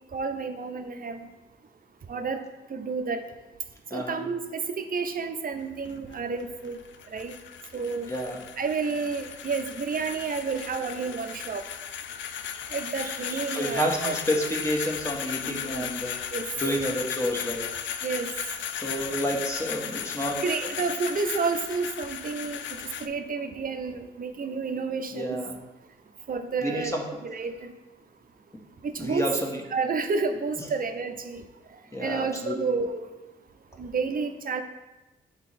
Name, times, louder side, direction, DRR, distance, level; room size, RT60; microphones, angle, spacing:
voice 1, 0.1-1.3 2.1-2.4 2.7-3.2 3.9-6.8 7.1-7.3 7.7-8.1 8.6-11.7 12.7-14.1 15.4-15.8 16.1-16.5 18.0-18.3 20.4-22.6 23.0-25.4 26.3-27.0 27.2-27.7 28.8-29.3 29.7-31.4 32.0-33.1 33.8-34.6, right 4 dB, 45° right, 7 dB, 0.7 m, -30 dB
sound 1, 5.5-23.1, left 8 dB, 65° left, 0.4 m, -36 dB
voice 2, 8.1-8.4 13.5-16.1 16.6-17.7 18.8-20.4 25.1-25.5 26.6-27.0 29.0-29.6 31.9-32.5, equal, 15° left, -1 dB, 1.4 m, -29 dB
7.1 x 3.1 x 4.2 m, 1.1 s
supercardioid pair, 45°, 21 cm